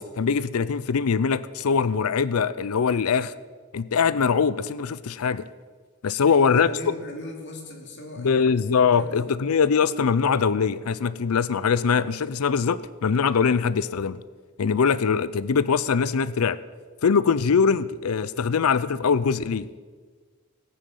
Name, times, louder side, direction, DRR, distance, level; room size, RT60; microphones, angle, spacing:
voice 1, 0.0-3.3 3.7-5.4 6.0-6.7 8.2-14.2 14.6-16.6 17.0-19.7, left 6 dB, 90° left, 17 dB, 0.5 m, -22 dB
voice 2, 6.1-9.4, left 1 dB, 55° left, 1 dB, 2.6 m, -39 dB
18.5 x 9.3 x 5.4 m, 1.5 s
head